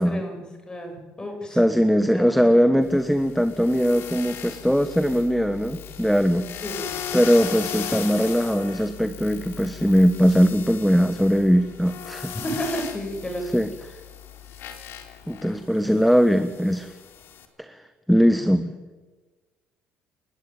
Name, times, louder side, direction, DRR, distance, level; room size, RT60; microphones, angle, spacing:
voice 1, 0.0-1.6 2.1-2.5 6.6-6.9 12.4-13.4 18.3-18.4, equal, 20° left, 4 dB, 7.6 m, -32 dB
voice 2, 1.6-6.5 7.1-12.3 13.5-13.7 15.3-16.9 17.6-17.8 18.1-18.7, equal, ahead, 9 dB, 1.4 m, -20 dB
sound 1, 2.8-17.4, left 8 dB, 65° left, 3.5 m, -38 dB
29.5 x 11.5 x 9.4 m, 1.3 s
cardioid pair, 95°, 4 cm